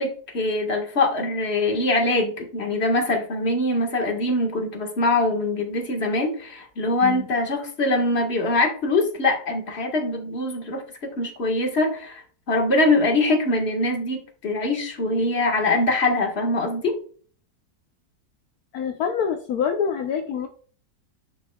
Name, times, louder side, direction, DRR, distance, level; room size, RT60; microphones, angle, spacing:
voice 1, 0.0-17.0, left 2 dB, 40° left, 3 dB, 1.8 m, -23 dB
voice 2, 18.7-20.5, left 7 dB, 75° left, 6 dB, 1.2 m, -26 dB
10.5 x 6.2 x 2.3 m, 0.44 s
omnidirectional pair, 1.7 m